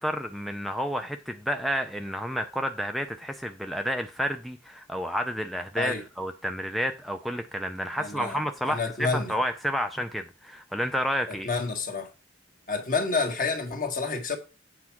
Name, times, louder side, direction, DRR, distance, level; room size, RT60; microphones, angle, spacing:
voice 1, 0.0-11.5, equal, ahead, 0.4 m, -30 dB
voice 2, 8.0-8.4 8.7-9.3 11.3-12.1 12.7-14.4, left 4 dB, 45° left, 1.7 m, -29 dB
8.4 x 4.6 x 6.0 m
head